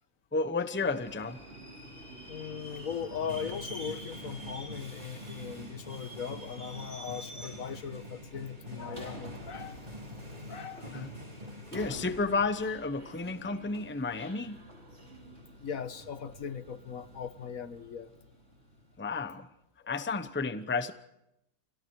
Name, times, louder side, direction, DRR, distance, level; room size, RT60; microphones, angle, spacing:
voice 1, 0.3-1.4 10.8-11.1 11.7-14.6 19.0-19.5 19.9-20.9, left 4 dB, 10° left, 0.8 m, -32 dB
Subway metro underground, 0.8-19.2, right 1 dB, 45° right, 4.4 m, -48 dB
voice 2, 2.3-9.8 10.5-10.9 11.4-11.5 15.6-18.1 19.8-20.1, left 7 dB, 65° left, 1.6 m, -39 dB
sound 1, 2.7-12.7, equal, 25° right, 4.3 m, -46 dB
29.5 x 27.0 x 4.8 m
omnidirectional pair, 1.6 m